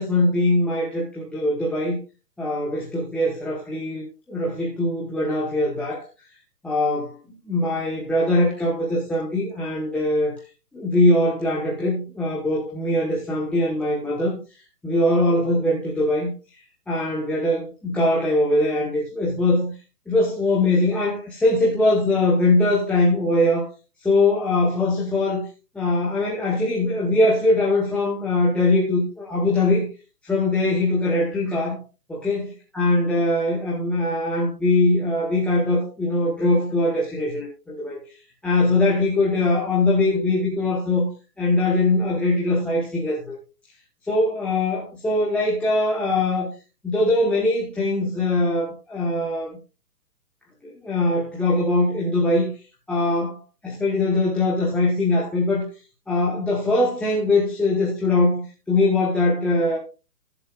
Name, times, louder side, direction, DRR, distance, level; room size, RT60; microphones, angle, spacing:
voice 1, 0.0-2.0 2.4-6.0 6.6-7.2 7.4-10.3 10.7-14.4 14.8-16.3 16.9-19.7 20.1-23.7 24.0-25.4 25.7-29.9 30.2-31.8 32.1-32.4 32.7-38.0 38.4-41.1 41.4-43.3 44.1-46.5 46.8-49.5 50.6-52.5 52.9-53.4 53.6-55.7 56.1-59.8, left 2 dB, 5° left, 1.0 m, -21 dB
19.0 x 6.9 x 2.4 m
hypercardioid pair, 145°, 48 cm